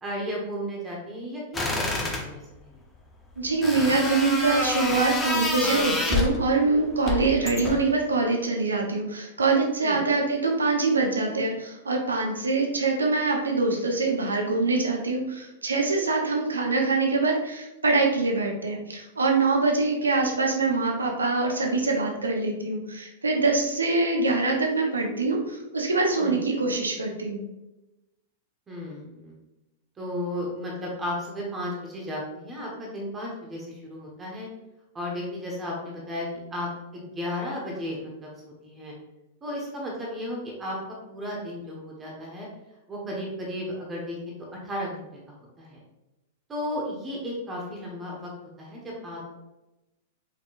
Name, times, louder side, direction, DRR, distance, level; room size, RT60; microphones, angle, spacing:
voice 1, 0.0-2.8 9.8-10.0 26.2-26.3 28.7-29.3 30.0-34.5 34.9-38.3 38.6-39.0 39.4-40.8 41.1-42.5 42.9-44.3 44.6-45.1 45.6-45.8 46.5-49.2, left 1 dB, 20° right, -2 dB, 1.3 m, -34 dB
sound 1, 1.5-2.3 3.6-6.4 7.0-7.9, left 2 dB, 15° left, 0.8 m, -27 dB
voice 2, 3.4-27.4, right 3 dB, 85° right, 1 dB, 0.8 m, -24 dB
5.4 x 3.5 x 2.5 m, 0.97 s
figure-of-eight pair, 100°, 0 cm